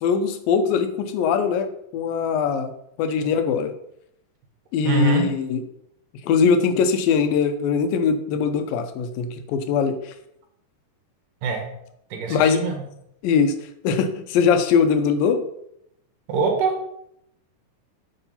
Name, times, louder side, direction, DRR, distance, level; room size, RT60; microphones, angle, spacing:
voice 1, 0.0-2.7 3.0-3.7 4.7-5.6 6.2-10.1 12.3-12.6 13.2-13.5 13.8-15.4, left 6 dB, 85° left, 8 dB, 2.6 m, -21 dB
voice 2, 4.8-5.3 11.4-11.6 12.1-12.8 16.3-16.7, right 4 dB, 70° right, 3 dB, 3.0 m, -23 dB
8.4 x 4.8 x 5.5 m, 0.76 s
omnidirectional pair, 4.0 m